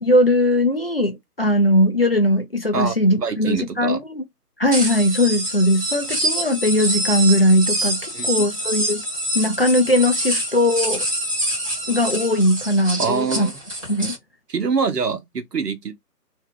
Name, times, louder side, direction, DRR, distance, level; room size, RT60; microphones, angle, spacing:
voice 1, 0.0-4.2 4.6-9.0 9.3-11.1 11.9-13.5 13.9-14.1, left 1 dB, 40° left, 0.5 m, -19 dB
voice 2, 2.7-4.0 8.1-8.5 13.0-13.6 14.5-15.9, right 5 dB, 75° right, 1.0 m, -25 dB
sound 1, 4.7-14.2, right 1 dB, 20° right, 1.2 m, -26 dB
2.7 x 2.2 x 3.5 m
figure-of-eight pair, 150°, 48 cm